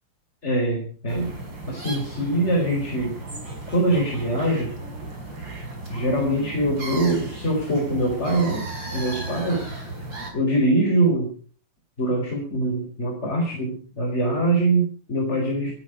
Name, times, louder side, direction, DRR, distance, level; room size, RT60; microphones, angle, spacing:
voice 1, 0.4-1.4 1.7-3.2 3.7-4.7 5.9-9.6 10.3-11.3 12.0-15.7, right 1 dB, 15° left, 0 dB, 4.4 m, -23 dB
sound 1, 1.1-10.3, right 2 dB, 25° right, 5.4 m, -35 dB
18.5 x 14.0 x 5.2 m, 0.43 s
omnidirectional pair, 4.9 m